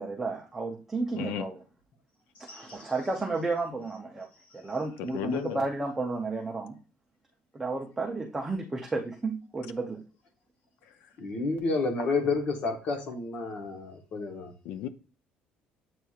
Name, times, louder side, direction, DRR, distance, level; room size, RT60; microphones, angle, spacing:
voice 1, 0.0-1.6 2.4-4.3 4.5-6.8 7.5-10.0, right 3 dB, 10° right, 0.5 m, -32 dB
voice 2, 1.1-1.4 5.0-5.6 14.6-14.9, left 10 dB, 85° left, 0.5 m, -34 dB
voice 3, 2.5-2.9 11.2-14.5, left 3 dB, 45° left, 1.0 m, -30 dB
7.8 x 2.8 x 2.4 m
cardioid pair, 170°, 3 cm